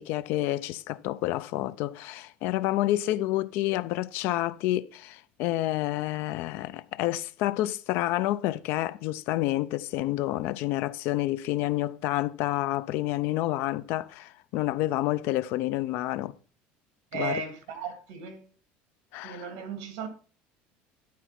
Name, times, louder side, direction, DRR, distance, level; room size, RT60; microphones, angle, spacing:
voice 1, 0.0-16.4 17.1-17.4 19.1-19.5, left 15 dB, 55° left, 0.5 m, -29 dB
voice 2, 17.1-18.5 19.2-20.1, right 6 dB, 75° right, 2.3 m, -36 dB
11.5 x 4.2 x 5.8 m
cardioid pair, 180°, 4 cm